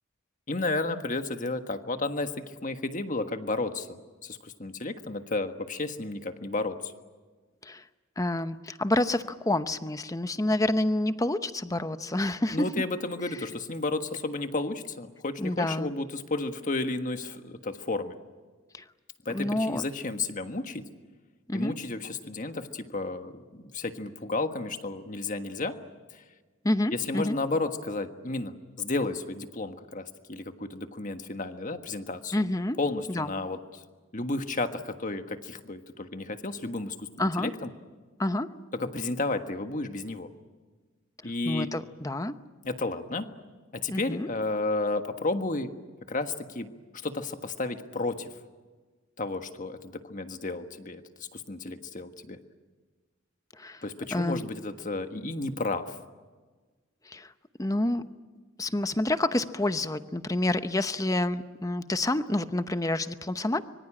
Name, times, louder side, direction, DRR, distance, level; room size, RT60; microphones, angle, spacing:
voice 1, 0.5-6.9 12.5-18.2 19.2-20.8 21.5-25.8 26.9-32.3 32.8-33.8 34.1-37.7 38.7-40.3 41.2-41.7 42.6-43.3 43.7-45.7 46.1-46.7 47.0-48.3 49.2-51.0 51.3-52.4 53.8-56.0, left 2 dB, 40° left, 7 dB, 1.5 m, -32 dB
voice 2, 8.2-12.7 15.4-15.9 18.7-18.8 19.3-19.8 21.5-21.7 26.6-27.4 32.3-32.8 33.1-33.3 37.2-37.5 38.2-38.5 41.4-42.3 43.9-44.3 53.6-53.8 54.1-54.4 57.1-57.3 57.6-58.0 58.6-63.6, left 1 dB, 15° left, 11 dB, 0.8 m, -28 dB
25.5 x 23.5 x 8.8 m, 1.4 s
head